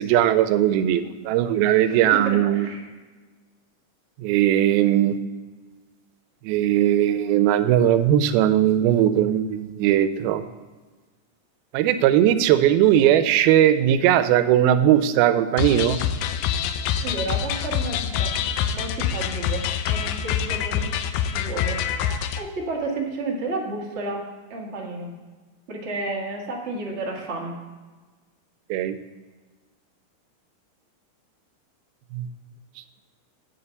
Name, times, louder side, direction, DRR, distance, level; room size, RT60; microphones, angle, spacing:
voice 1, 0.0-2.7 4.2-5.2 6.4-10.4 11.7-16.0 28.7-29.0 32.1-32.3, right 11 dB, 90° right, 11 dB, 2.5 m, -19 dB
voice 2, 1.8-2.8 17.0-18.3 18.7-20.9 21.3-24.2 24.5-25.1 25.7-27.5, right 2 dB, 45° right, -2 dB, 0.8 m, -31 dB
sound 1, 15.6-22.4, left 8 dB, 80° left, 2.0 m, -26 dB
9.0 x 5.5 x 6.8 m, 1.3 s
omnidirectional pair, 4.3 m